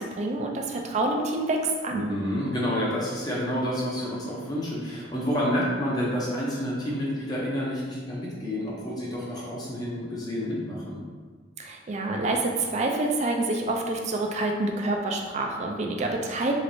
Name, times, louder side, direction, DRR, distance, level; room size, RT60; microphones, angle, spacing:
voice 1, 0.0-1.6 1.8-2.1 11.6-16.5, right 2 dB, 35° right, 2 dB, 0.3 m, -27 dB
voice 2, 1.9-11.0, equal, 20° left, -5 dB, 0.5 m, -29 dB
3.1 x 3.1 x 2.6 m, 1.5 s
head